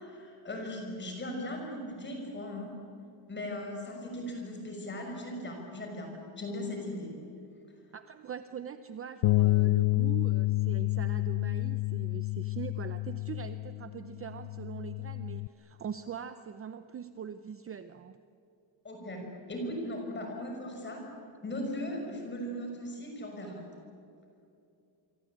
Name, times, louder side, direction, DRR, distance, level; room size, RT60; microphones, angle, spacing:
voice 1, 0.0-2.8 3.3-7.2 18.8-23.6, left 1 dB, 20° left, 2 dB, 6.0 m, -38 dB
voice 2, 7.9-18.2, right 8 dB, 30° right, 10 dB, 0.6 m, -42 dB
Bass guitar, 9.2-15.5, left 20 dB, 70° left, 0.6 m, -29 dB
28.0 x 24.0 x 8.7 m, 2.6 s
cardioid pair, 180°, 48 cm